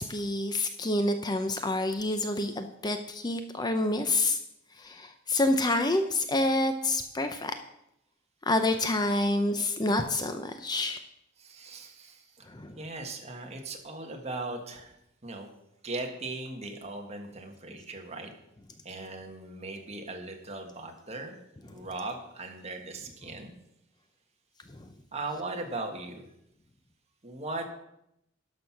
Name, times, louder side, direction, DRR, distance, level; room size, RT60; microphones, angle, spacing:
voice 1, 0.0-4.4 4.8-7.5 8.5-11.0 12.5-12.7, left 2 dB, 20° left, 8 dB, 0.5 m, -28 dB
voice 2, 11.4-12.5 12.7-14.9 15.2-15.5 15.8-18.3 18.8-23.5 25.1-26.3 27.2-27.7, right 2 dB, 30° right, 3 dB, 1.5 m, -38 dB
11.5 x 6.2 x 5.8 m, 0.81 s
head